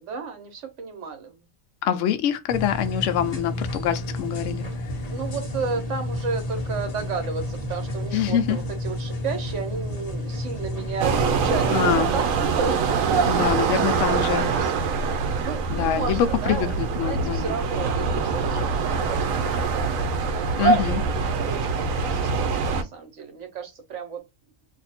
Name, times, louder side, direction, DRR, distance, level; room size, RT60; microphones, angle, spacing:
voice 1, 0.0-1.5 5.1-13.2 13.8-15.1 15.4-24.2, right 5 dB, 65° right, 1.3 m, -33 dB
voice 2, 1.8-4.6 8.1-8.6 11.7-12.1 13.3-14.5 15.7-17.6 20.6-21.0, left 10 dB, 70° left, 0.9 m, -25 dB
sound 1, 2.5-11.8, left 1 dB, 35° left, 0.8 m, -31 dB
sound 2, 11.0-22.8, right 5 dB, 85° right, 1.0 m, -24 dB
2.7 x 2.5 x 4.1 m
omnidirectional pair, 1.3 m